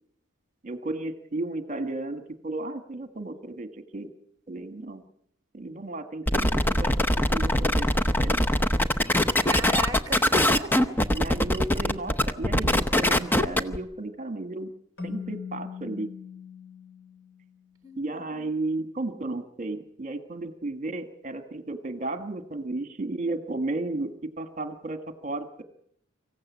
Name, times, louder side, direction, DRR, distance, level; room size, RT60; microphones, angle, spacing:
voice 1, 0.6-3.7 3.9-4.1 4.5-5.0 5.5-6.9 7.3-7.9 8.2-8.5 11.1-14.7 15.0-16.1 18.0-25.6, right 2 dB, 35° right, 1.5 m, -33 dB
sound 1, 6.3-13.8, left 1 dB, 10° left, 0.8 m, -22 dB
voice 2, 9.4-11.2 17.8-18.5, right 1 dB, 20° right, 1.4 m, -36 dB
Keyboard (musical), 15.0-17.7, left 6 dB, 65° left, 3.6 m, -40 dB
25.0 x 15.5 x 8.4 m
head